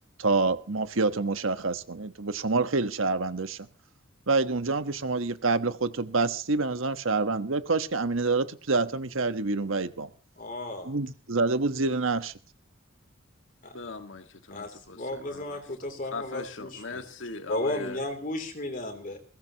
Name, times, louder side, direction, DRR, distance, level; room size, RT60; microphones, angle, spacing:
voice 1, 0.2-3.7 4.3-10.1 10.9-12.3, right 3 dB, 85° right, 1.3 m, -27 dB
voice 2, 10.4-11.0 13.6-13.7 14.5-17.0 17.5-19.2, left 1 dB, 45° left, 3.1 m, -34 dB
voice 3, 13.7-18.0, left 3 dB, 70° left, 1.8 m, -40 dB
22.0 x 17.0 x 3.0 m
head